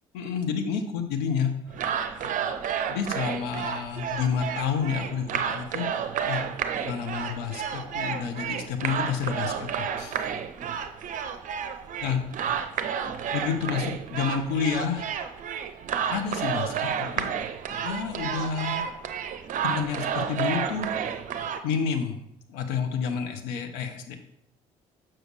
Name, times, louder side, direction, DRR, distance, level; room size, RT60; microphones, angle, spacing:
voice 1, 0.1-1.5 2.1-2.5 2.9-5.9 6.2-6.4 6.8-10.2 12.0-12.2 13.3-15.1 16.1-17.3 17.8-18.8 19.6-20.9 21.6-22.2 22.5-24.2, left 6 dB, 70° left, 7 dB, 0.9 m, -29 dB
sound 1, 1.7-21.6, right 8 dB, 50° right, 0.6 m, -31 dB
6.5 x 6.1 x 3.2 m, 0.78 s
hypercardioid pair, 55°, 17 cm